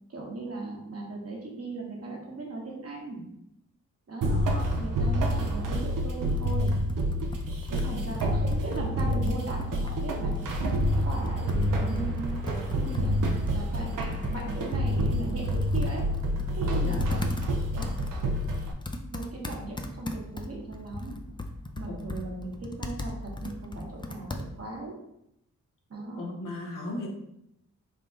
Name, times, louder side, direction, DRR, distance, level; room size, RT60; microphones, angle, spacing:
voice 1, 0.1-3.2 4.1-6.8 7.7-10.3 11.0-12.4 12.8-13.1 13.5-16.0 16.6-17.2 17.7-18.0 19.1-21.1 21.8-25.0 25.9-26.2, right 2 dB, 50° right, -1 dB, 1.2 m, -38 dB
sound 1, 4.2-18.7, equal, 85° right, 0.6 m, -28 dB
voice 2, 4.3-4.8 16.9-17.0 21.9-22.1 26.2-27.1, left 2 dB, 90° left, 0 dB, 0.9 m, -36 dB
Computer keyboard, 6.3-24.8, left 2 dB, 15° left, 0.4 m, -39 dB
3.6 x 2.4 x 3.8 m, 0.79 s
cardioid pair, 60°, 31 cm